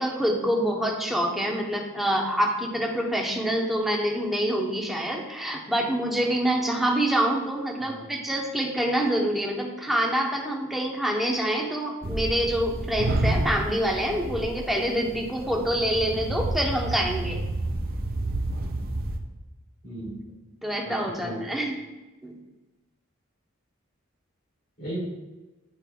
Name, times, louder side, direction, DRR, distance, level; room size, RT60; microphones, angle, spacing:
voice 1, 0.0-17.4 20.6-21.8 22.2-22.3, right 1 dB, ahead, -1 dB, 0.9 m, -26 dB
voice 2, 7.8-8.1 17.8-17.9 19.8-20.2 20.8-21.5 24.8-25.0, right 1 dB, 45° left, -4 dB, 2.3 m, -36 dB
sound 1, 12.0-19.2, right 1 dB, 45° right, 0.6 m, -30 dB
10.0 x 5.4 x 2.3 m, 1.1 s
head